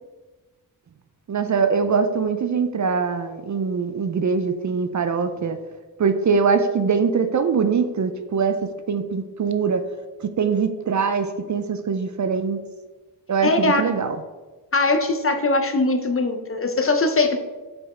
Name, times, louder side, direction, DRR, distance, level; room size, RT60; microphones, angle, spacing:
voice 1, 1.3-5.6 6.0-9.9 10.2-12.6 13.3-14.2, right 5 dB, 50° right, 9 dB, 0.4 m, -22 dB
voice 2, 13.4-13.8 14.7-17.4, left 2 dB, 35° left, 6 dB, 0.7 m, -21 dB
5.1 x 4.3 x 4.3 m, 1.3 s
wide cardioid pair, 90°, 39 cm